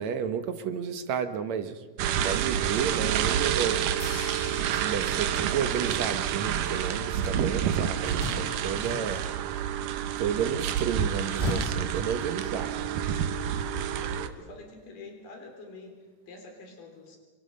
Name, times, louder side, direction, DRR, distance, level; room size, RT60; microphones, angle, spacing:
voice 1, 0.0-3.8 4.7-9.2 10.2-12.8, right 7 dB, 65° right, 9 dB, 2.1 m, -31 dB
sound 1, 2.0-14.3, right 9 dB, 85° right, 2.6 m, -29 dB
sound 2, 4.0-6.3, left 8 dB, 60° left, 1.8 m, -46 dB
sound 3, 7.1-9.7 11.0-12.8, left 1 dB, 10° left, 2.5 m, -37 dB
voice 2, 13.7-17.2, left 3 dB, 80° left, 3 dB, 5.0 m, -46 dB
28.0 x 23.0 x 5.4 m, 1.3 s
omnidirectional pair, 3.8 m